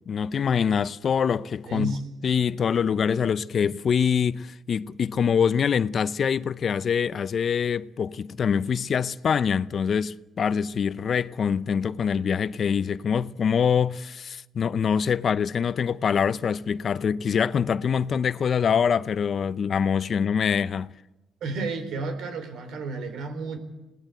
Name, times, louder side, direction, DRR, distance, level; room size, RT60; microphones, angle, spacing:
voice 1, 0.1-2.0 2.2-20.9, left 7 dB, 50° left, 0.6 m, -24 dB
voice 2, 1.7-2.0 21.4-23.6, right 3 dB, 75° right, 4.0 m, -31 dB
21.5 x 18.0 x 8.3 m
cardioid pair, 85°, 0 cm